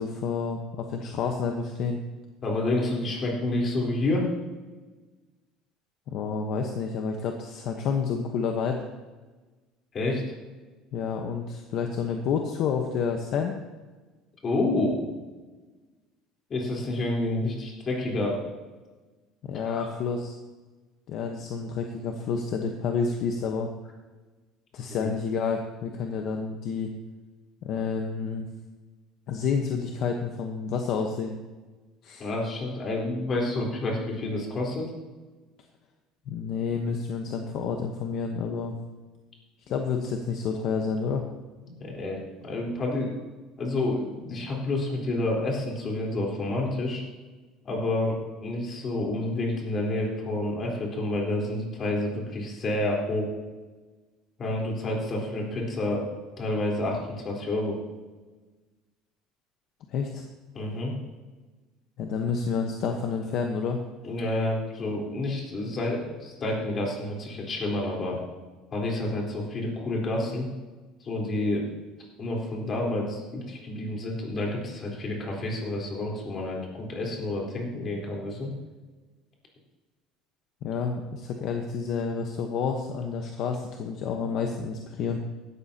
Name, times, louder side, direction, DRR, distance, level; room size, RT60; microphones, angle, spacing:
voice 1, 0.0-2.0 6.1-8.8 10.9-13.5 19.4-20.4 21.1-23.7 24.7-26.9 27.6-28.5 29.3-31.4 32.0-32.3 36.3-38.7 39.7-41.2 59.9-60.2 62.0-63.8 80.6-85.2, left 5 dB, 55° left, 3 dB, 1.1 m, -29 dB
voice 2, 2.4-4.3 9.9-10.2 14.4-15.0 16.5-18.4 19.7-19.9 25.0-25.1 32.2-34.9 41.6-43.1 43.6-47.0 47.6-53.4 54.4-56.1 56.4-57.8 60.5-60.9 64.0-68.2 68.7-70.5 71.0-71.6 72.2-78.5, left 2 dB, 30° left, -1 dB, 4.0 m, -29 dB
16.0 x 12.5 x 2.9 m, 1.3 s
cardioid pair, 145°, 0 cm